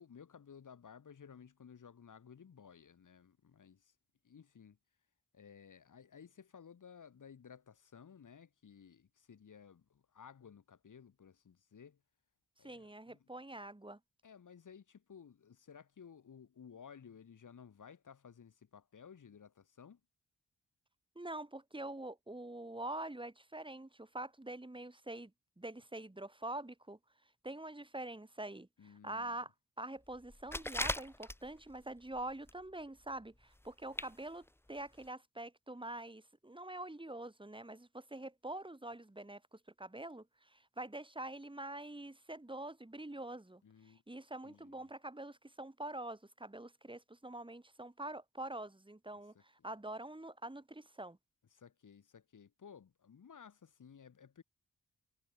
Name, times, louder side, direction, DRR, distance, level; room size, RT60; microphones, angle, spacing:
voice 1, 0.0-3.9 4.2-4.8 5.3-12.0 12.6-13.3 14.2-20.0 28.8-29.4 43.6-44.0 44.4-44.9 49.3-49.4 51.5-54.4, left 7 dB, 70° left, 3.6 m, -57 dB
voice 2, 12.6-14.0 21.2-25.3 25.6-27.0 27.4-29.5 29.8-51.2, right 1 dB, 15° right, 4.3 m, -45 dB
water spritzer bottle handling water slosh, 30.3-31.7 32.1-32.6 32.9-33.0 33.6-33.7 33.9-34.1 34.5-34.6 35.0-35.1, left 1 dB, 5° left, 1.1 m, -39 dB
cardioid pair, 65°, 32 cm